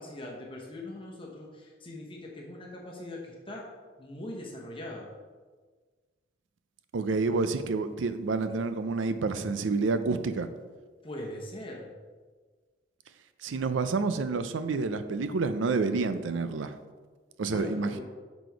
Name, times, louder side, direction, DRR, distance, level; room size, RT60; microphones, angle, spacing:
voice 1, 0.0-3.6 4.0-5.1 11.0-11.9 17.5-18.0, left 1 dB, 30° left, -2 dB, 1.0 m, -41 dB
voice 2, 6.9-10.5 13.4-16.8 17.4-17.9, right 4 dB, 85° right, 11 dB, 0.5 m, -28 dB
6.7 x 4.1 x 4.6 m, 1.4 s
head